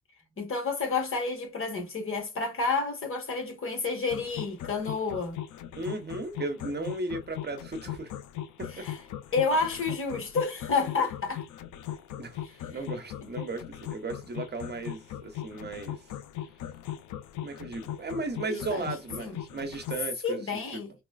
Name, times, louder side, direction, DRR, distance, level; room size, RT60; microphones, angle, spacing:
voice 1, 0.4-5.4 8.7-9.0 9.3-11.4 12.7-12.9 18.5-18.9 19.2-19.4 20.2-20.9, left 4 dB, 45° left, 1.5 m, -30 dB
sound 1, 4.1-20.1, left 11 dB, 75° left, 0.5 m, -38 dB
voice 2, 5.7-8.1 8.6-8.8 12.2-16.0 17.4-20.6, right 2 dB, 35° right, 0.9 m, -36 dB
4.0 x 2.3 x 2.3 m
cardioid pair, 90°, 30 cm